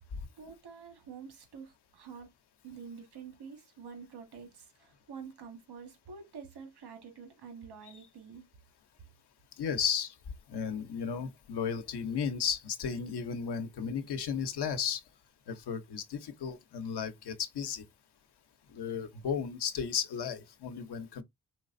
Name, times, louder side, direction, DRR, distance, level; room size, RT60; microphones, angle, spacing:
voice 1, 0.4-2.3 2.6-8.5, right 6 dB, 85° right, 1.6 m, -48 dB
voice 2, 9.6-10.1 10.5-15.0 15.5-17.8 18.7-21.2, left 7 dB, 90° left, 0.9 m, -34 dB
4.6 x 3.3 x 2.6 m
cardioid pair, 100°, 38 cm